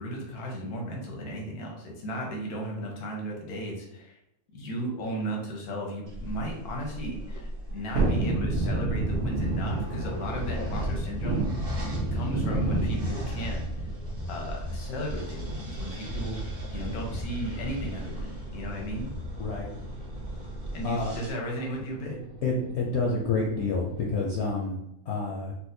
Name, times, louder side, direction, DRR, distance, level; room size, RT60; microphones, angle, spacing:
voice 1, 0.0-4.2 4.5-11.8 12.1-13.6 14.3-16.4 16.7-19.1 20.7-22.1, equal, 85° left, -1 dB, 1.3 m, -35 dB
sound 1, 6.1-21.3, equal, 40° right, 0.5 m, -38 dB
Thunderstorm, 7.9-18.2 18.5-18.6, right 2 dB, 85° right, 1.4 m, -30 dB
sound 2, 19.3-24.5, right 4 dB, 60° right, 1.2 m, -46 dB
voice 2, 20.8-21.2 22.4-25.5, left 3 dB, 65° left, -2 dB, 0.7 m, -28 dB
4.2 x 2.1 x 2.6 m, 0.81 s
omnidirectional pair, 1.6 m